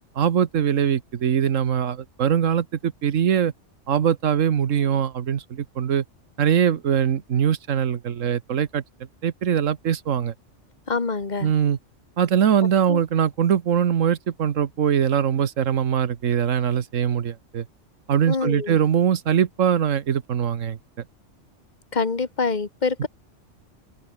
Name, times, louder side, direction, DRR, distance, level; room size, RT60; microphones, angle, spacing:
voice 1, 0.2-3.5 3.9-6.0 6.4-8.8 9.2-10.3 11.4-11.8 12.2-17.7 18.1-20.8, right 8 dB, 80° right, 1.4 m, -22 dB
voice 2, 10.9-11.5 12.9-13.0 18.3-18.8 21.9-23.1, left 4 dB, 35° left, 1.9 m, -25 dB
open air
omnidirectional pair, 1.3 m